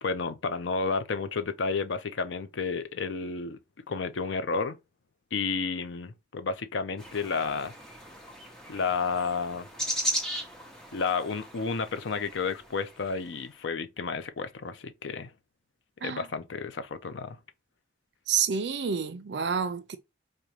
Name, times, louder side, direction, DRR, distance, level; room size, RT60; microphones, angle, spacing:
voice 1, 0.0-3.6 3.9-4.8 5.3-7.7 8.7-9.7 10.9-15.3 16.0-17.4, left 4 dB, 80° left, 0.5 m, -31 dB
sound 1, 7.0-13.2, right 1 dB, 5° left, 0.6 m, -37 dB
voice 2, 18.3-20.0, right 7 dB, 65° right, 0.5 m, -29 dB
5.0 x 2.2 x 2.8 m
head